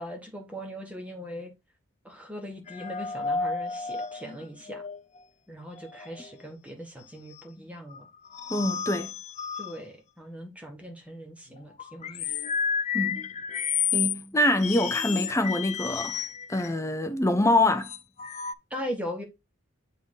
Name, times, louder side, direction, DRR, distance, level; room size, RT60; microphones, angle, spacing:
voice 1, 0.0-1.5 2.0-4.8 5.5-8.1 9.6-12.3 18.7-19.2, equal, 5° right, 1.5 m, -39 dB
sound 1, 2.7-5.2 5.8-6.3 7.4-7.5 7.9-9.8 11.6-14.2 14.6-16.7 17.8-18.5, left 7 dB, 35° left, 0.4 m, -31 dB
voice 2, 8.5-9.1 12.9-13.2 13.9-16.2 16.5-17.9, left 1 dB, 15° left, 0.8 m, -25 dB
7.3 x 3.9 x 4.0 m
head